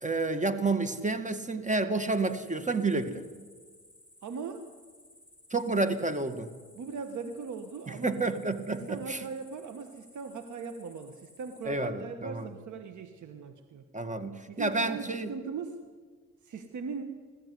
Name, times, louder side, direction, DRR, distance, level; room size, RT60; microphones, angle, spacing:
voice 1, 0.0-3.2 5.5-6.5 7.9-9.3 11.7-12.5 13.9-15.3, right 3 dB, 25° right, 10 dB, 2.0 m, -30 dB
sound 1, 2.1-11.7, left 1 dB, 5° right, 7.5 m, -58 dB
voice 2, 4.2-4.7 6.7-8.2 8.7-13.8 14.5-15.8 16.4-17.1, right 5 dB, 75° right, 8 dB, 1.4 m, -39 dB
20.0 x 15.0 x 9.6 m, 1.5 s
cardioid pair, 65°, 30 cm